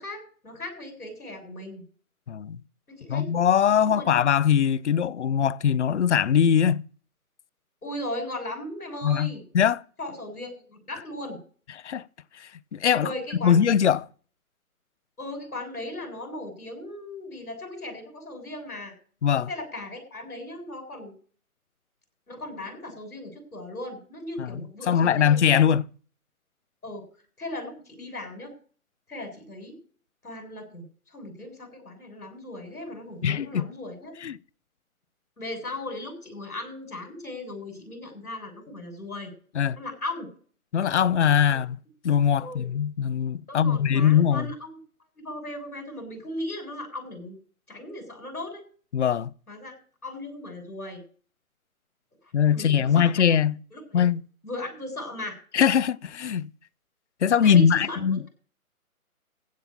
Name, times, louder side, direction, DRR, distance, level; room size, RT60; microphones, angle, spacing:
voice 1, 0.0-1.8 2.9-3.3 3.9-4.1 7.8-9.4 10.0-11.4 13.0-13.6 15.2-18.9 19.5-21.1 22.3-25.4 26.8-27.0 27.4-28.5 29.1-29.8 30.2-34.1 35.4-39.3 39.8-40.3 41.5-41.6 42.4-42.7 43.5-44.8 45.2-47.4 47.7-48.6 49.5-49.7 50.0-51.0 52.5-53.1 53.7-54.0 54.4-55.4 57.4-58.0, left 1 dB, 85° left, 7.5 m, -37 dB
voice 2, 2.3-2.6 3.1-6.8 9.0-9.8 11.8-12.0 12.4-13.1 13.4-14.1 19.2-19.5 24.4-24.6 24.9-25.9 33.2-33.6 34.2-34.4 39.5-39.8 40.7-41.8 42.0-44.5 48.9-49.3 52.3-53.6 53.9-54.2 55.5-56.5 57.2-58.2, left 8 dB, 50° left, 0.6 m, -21 dB
15.5 x 5.7 x 8.8 m
figure-of-eight pair, 145°, 44 cm